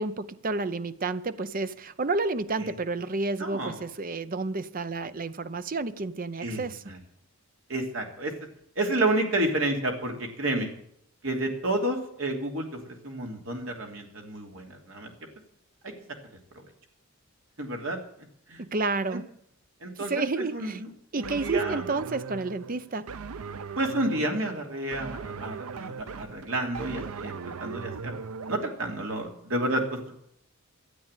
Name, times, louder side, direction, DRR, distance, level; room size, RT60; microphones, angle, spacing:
voice 1, 0.0-6.8 18.6-19.2 20.0-20.8 21.1-23.1, right 3 dB, 40° right, 0.7 m, -30 dB
voice 2, 3.4-3.8 6.4-7.0 7.7-8.3 8.7-10.7 11.2-15.1 15.8-15.9 17.6-18.0 18.5-18.6 19.1-19.2 19.8-20.2 20.5-21.8 23.8-28.1 28.5-30.1, right 1 dB, 60° right, 2.9 m, -30 dB
sound 1, 21.2-28.6, right 5 dB, 80° right, 0.6 m, -39 dB
13.5 x 8.8 x 9.0 m
head